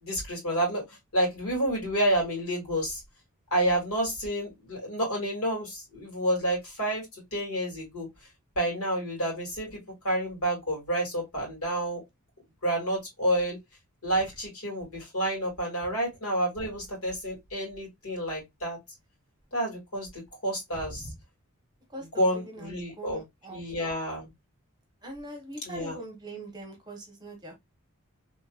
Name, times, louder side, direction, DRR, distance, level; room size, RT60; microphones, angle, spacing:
voice 1, 0.0-0.8 1.1-3.0 3.5-7.0 7.3-8.1 8.6-9.8 10.0-12.0 12.6-13.6 14.0-18.8 19.5-21.1 22.0-23.2 23.5-24.3 25.6-26.0, right 1 dB, 75° left, 2.2 m, -29 dB
voice 2, 21.9-23.6 25.0-27.5, right 1 dB, 20° right, 0.9 m, -42 dB
3.0 x 2.8 x 2.2 m
head